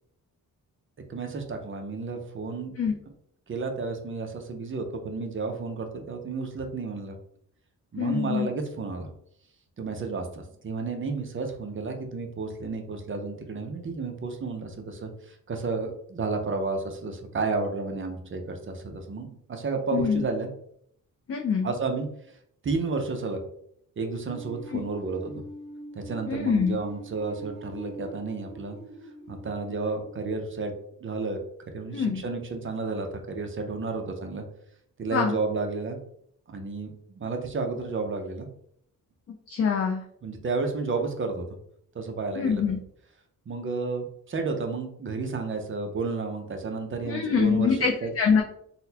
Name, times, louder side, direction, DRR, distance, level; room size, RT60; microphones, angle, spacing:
voice 1, 1.1-2.8 3.5-7.2 7.9-9.1 9.8-20.5 21.6-22.4 22.6-23.4 24.0-25.4 25.9-28.8 29.3-30.7 31.0-31.4 31.7-34.4 35.0-36.0 36.5-38.5 40.2-41.5 41.9-42.6 43.5-47.7 48.0-48.1, right 4 dB, 35° right, 4 dB, 0.5 m, -32 dB
voice 2, 8.0-8.5 19.9-20.2 21.3-21.7 24.7-24.8 26.3-26.8 31.9-32.2 35.1-35.3 39.5-40.0 42.4-42.8 47.1-48.4, left 6 dB, 40° left, 1 dB, 0.4 m, -24 dB
sound 1, 24.3-31.2, right 1 dB, 15° right, 1.3 m, -44 dB
3.9 x 2.1 x 2.7 m, 0.68 s
cardioid pair, 120°, 36 cm